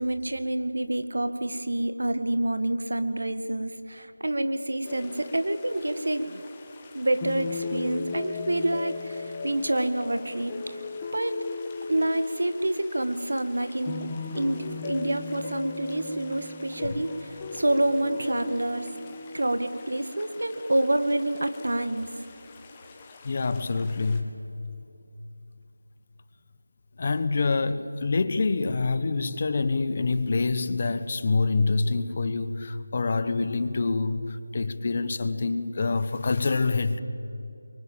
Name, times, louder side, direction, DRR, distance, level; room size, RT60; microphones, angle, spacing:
voice 1, 0.0-6.4 6.9-10.8 11.1-11.4 11.9-18.9 19.3-22.1, right 1 dB, 75° right, 9 dB, 2.1 m, -28 dB
sound 1, 4.8-24.2, left 4 dB, 15° left, 1.7 m, -39 dB
voice 2, 23.2-24.3 27.0-37.0, left 3 dB, 35° left, 11 dB, 1.1 m, -26 dB
27.5 x 23.5 x 7.6 m, 2.8 s
figure-of-eight pair, 170°, 0 cm